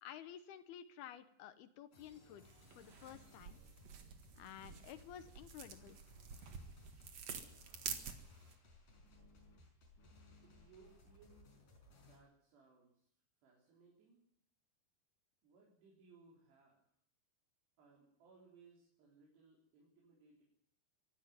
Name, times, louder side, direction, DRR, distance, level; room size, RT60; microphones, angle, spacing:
voice 1, 0.0-3.6 4.4-6.0, left 10 dB, 75° left, 11 dB, 2.8 m, -53 dB
sound 1, 1.9-12.2, left 2 dB, 50° left, 6.6 m, -63 dB
sound 2, 2.4-8.5, right 6 dB, 50° right, 2.3 m, -49 dB
voice 2, 10.4-11.7 12.0-13.1 13.4-14.2 15.4-16.8 17.8-20.4, right 4 dB, 75° right, -3 dB, 6.0 m, -65 dB
24.5 x 12.0 x 9.4 m, 0.67 s
omnidirectional pair, 4.8 m